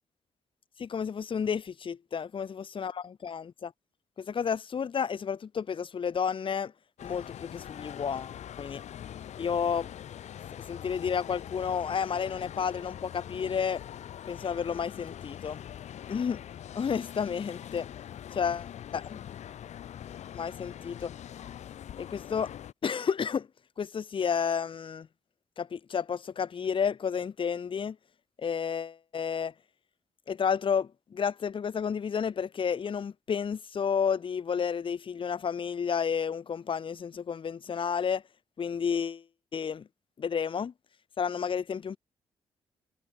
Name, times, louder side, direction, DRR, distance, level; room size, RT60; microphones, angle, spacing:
voice 1, 0.8-3.7 4.2-6.7 7.0-8.8 9.4-9.9 10.6-13.8 14.3-15.6 16.1-16.4 16.7-17.9 18.4-18.7 18.9-19.2 20.3-21.1 22.0-22.5 22.8-23.5 23.8-25.1 25.6-28.0 28.4-29.5 30.3-38.2 38.6-39.2 39.5-39.9 40.2-40.7 41.2-42.0, left 7 dB, 45° left, 0.7 m, -31 dB
sound 1, 7.0-22.7, left 10 dB, 75° left, 1.6 m, -43 dB
supercardioid pair, 55°, 12 cm